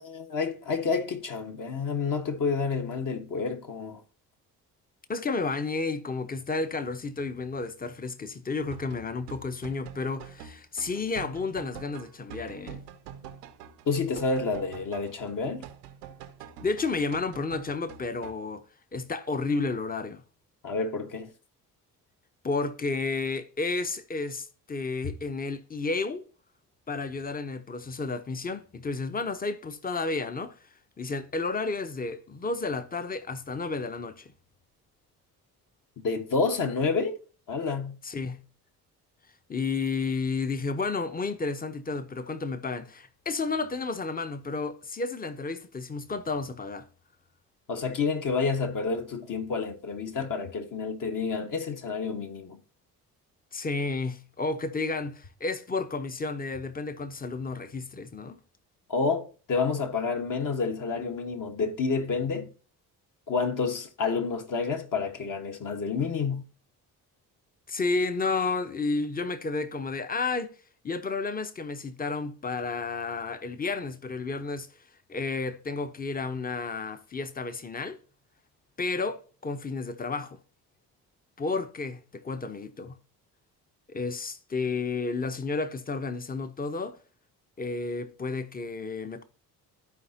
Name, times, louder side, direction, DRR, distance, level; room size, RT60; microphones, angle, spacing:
voice 1, 0.0-4.0 13.8-15.6 20.6-21.3 36.0-37.2 37.5-38.0 47.7-52.6 58.9-62.5 63.3-66.4, left 4 dB, 40° left, 1.6 m, -29 dB
voice 2, 5.1-12.8 16.6-18.6 18.9-20.2 22.4-26.2 26.9-30.5 31.0-34.3 38.0-38.4 39.5-46.9 53.5-58.4 67.7-70.5 70.8-74.7 75.1-78.0 78.8-80.4 81.4-83.0 83.9-87.0 87.6-89.2, left 3 dB, 20° left, 1.0 m, -31 dB
sound 1, 8.6-18.3, right 8 dB, 70° right, 0.9 m, -46 dB
14.0 x 4.8 x 2.9 m
figure-of-eight pair, 45°, 48 cm